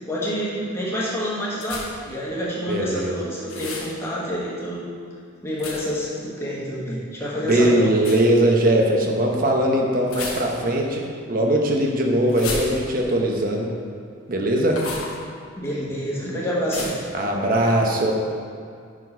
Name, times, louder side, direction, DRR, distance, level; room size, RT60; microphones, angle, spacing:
voice 1, 0.1-4.9 5.4-7.9 15.6-17.0, equal, 10° left, -6 dB, 1.3 m, -28 dB
sound 1, 1.6-2.1 3.5-3.9 5.6-6.0 8.0-8.3 10.1-10.8 12.3-13.1 14.7-15.2 16.7-17.1, left 3 dB, 90° left, 1.2 m, -33 dB
voice 2, 2.7-3.2 7.4-13.7 14.3-14.8 17.1-18.1, right 1 dB, 40° right, 1 dB, 0.8 m, -20 dB
6.0 x 4.9 x 5.5 m, 2.3 s
head